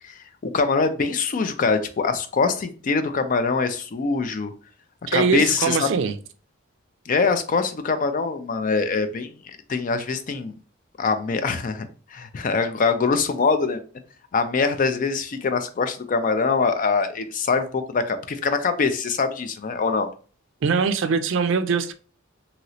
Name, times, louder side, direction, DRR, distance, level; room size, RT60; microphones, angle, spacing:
voice 1, 0.0-4.5 5.1-5.9 7.1-10.5 11.0-13.8 14.3-20.1, left 4 dB, 40° left, 0.4 m, -23 dB
voice 2, 5.1-6.1 20.6-21.9, right 5 dB, 65° right, 0.4 m, -22 dB
3.0 x 2.8 x 2.7 m
head